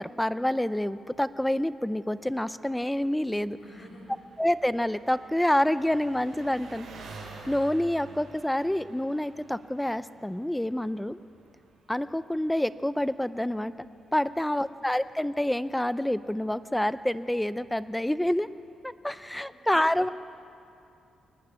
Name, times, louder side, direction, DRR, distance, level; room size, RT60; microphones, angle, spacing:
voice 1, 0.0-3.6 4.4-6.9 7.5-11.2 11.9-13.9 14.1-18.5 18.8-20.1, left 1 dB, 5° left, 14 dB, 0.5 m, -27 dB
Engine, 0.6-18.8, right 3 dB, 60° right, 5.0 m, -52 dB
voice 2, 3.6-4.2 14.3-14.8 19.2-20.1, left 1 dB, 60° left, -1 dB, 7.9 m, -52 dB
22.5 x 19.5 x 9.4 m, 2.6 s
cardioid pair, 135°, 0 cm